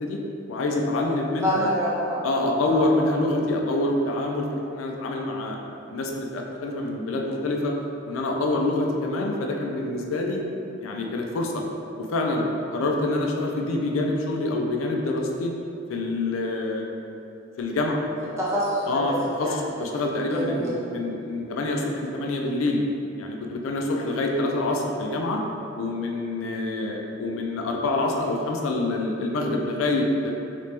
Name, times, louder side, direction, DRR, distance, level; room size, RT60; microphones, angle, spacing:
voice 1, 0.5-1.7 2.2-5.6 5.9-7.7 8.0-10.4 10.8-11.6 12.1-15.5 15.9-16.9 17.6-18.0 18.9-22.8 23.2-25.4 25.8-30.3, left 2 dB, 85° left, 1 dB, 0.4 m, -26 dB
voice 2, 1.4-2.2 2.7-2.9 18.4-19.2 19.4-19.5 20.3-20.7, equal, 15° right, -9 dB, 0.8 m, -26 dB
2.9 x 2.9 x 3.3 m, 2.8 s
head